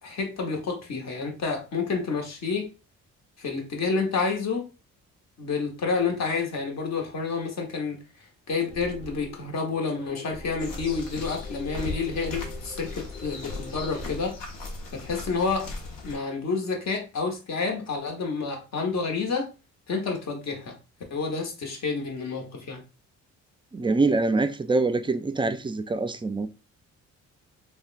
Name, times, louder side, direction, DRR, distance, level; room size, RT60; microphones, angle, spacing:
voice 1, 0.0-2.7 3.4-4.7 5.4-8.0 8.5-14.4 14.9-15.7 16.0-19.5 19.9-20.8 21.1-22.8, left 4 dB, 55° left, 1.1 m, -29 dB
sound 1, 8.6-14.3, left 3 dB, 15° left, 1.1 m, -43 dB
sound 2, 10.6-16.2, left 2 dB, 80° left, 0.8 m, -38 dB
voice 2, 23.7-26.5, right 3 dB, 15° right, 0.3 m, -24 dB
3.4 x 2.2 x 2.5 m
supercardioid pair, 60°, 32 cm